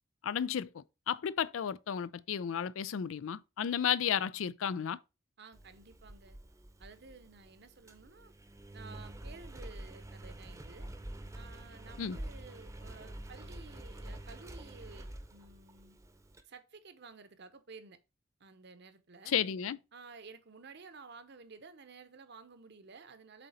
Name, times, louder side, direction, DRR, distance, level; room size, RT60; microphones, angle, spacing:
voice 1, 0.2-5.0 12.0-12.2 19.3-19.8, left 8 dB, 80° left, 0.4 m, -33 dB
voice 2, 5.4-6.4 6.8-8.3 8.7-10.9 11.3-16.0 16.5-18.0 18.4-19.4 19.9-23.5, right 4 dB, 60° right, 0.9 m, -53 dB
Engine, 5.5-16.4, right 1 dB, 15° right, 0.7 m, -47 dB
7.6 x 3.9 x 4.1 m
head